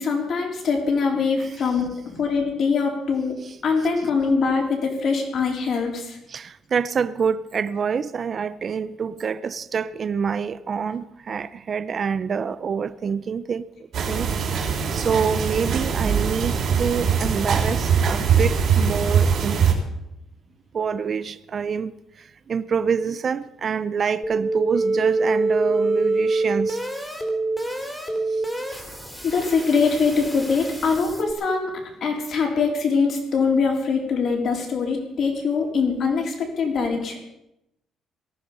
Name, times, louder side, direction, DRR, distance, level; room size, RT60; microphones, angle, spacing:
voice 1, 0.0-6.2 29.2-37.2, left 5 dB, 45° left, 3.9 m, -23 dB
voice 2, 6.3-13.6 14.0-19.6 20.7-26.8 28.3-28.4 28.7-29.2, right 6 dB, 35° right, 0.5 m, -27 dB
sound 1, 13.9-19.7, right 6 dB, 50° right, 3.7 m, -22 dB
sound 2, 24.2-31.3, right 2 dB, 5° left, 3.0 m, -25 dB
18.5 x 14.0 x 5.6 m
cardioid pair, 160°, 0 cm